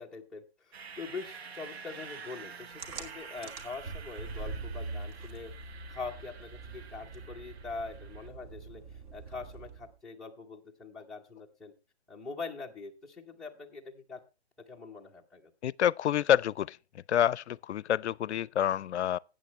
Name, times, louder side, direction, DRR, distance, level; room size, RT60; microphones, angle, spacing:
voice 1, 0.0-5.5 5.9-11.7 12.1-14.2 14.7-15.5, left 4 dB, ahead, 0.8 m, -43 dB
sound 1, 0.7-8.3, right 6 dB, 70° right, 1.3 m, -48 dB
sound 2, 2.8-10.0, right 3 dB, 35° right, 1.7 m, -43 dB
voice 2, 15.6-16.8 17.1-19.2, left 10 dB, 85° left, 0.5 m, -27 dB
13.0 x 8.9 x 3.1 m
hypercardioid pair, 155°, 33 cm